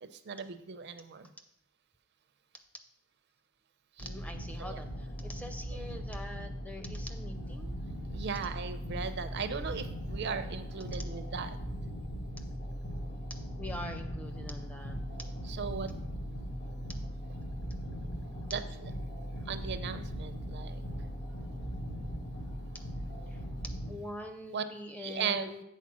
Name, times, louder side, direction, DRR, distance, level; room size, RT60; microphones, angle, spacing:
voice 1, 0.1-1.3 4.0-4.1 4.6-4.8 5.7-5.8 8.1-11.6 15.4-15.9 18.5-18.9 19.5-20.8 24.5-24.6 25.0-25.5, right 6 dB, 50° right, 10 dB, 0.5 m, -37 dB
sound 1, 4.0-23.9, equal, 90° left, 1.6 m, -39 dB
voice 2, 4.0-4.9 5.2-7.8 13.6-15.0 23.9-25.6, left 1 dB, 5° left, 6 dB, 0.4 m, -44 dB
7.2 x 4.3 x 6.0 m, 0.78 s
head